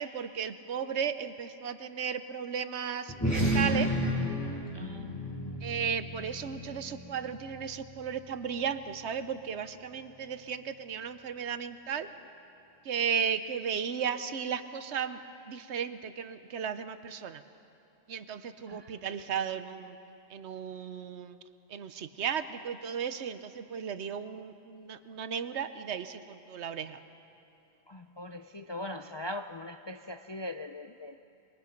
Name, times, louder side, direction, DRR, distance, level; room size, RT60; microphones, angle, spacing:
voice 1, 0.0-3.9 5.6-12.1 12.8-15.2 15.5-17.4 18.1-20.0 20.3-21.4 21.7-27.0, right 7 dB, 70° right, 11 dB, 1.1 m, -35 dB
sound 1, 3.1-7.9, equal, 15° left, 4.9 m, -32 dB
voice 2, 4.7-5.8 18.7-18.9 27.9-31.2, left 1 dB, 40° left, 7 dB, 0.3 m, -41 dB
24.5 x 22.5 x 5.2 m, 2.7 s
omnidirectional pair, 1.2 m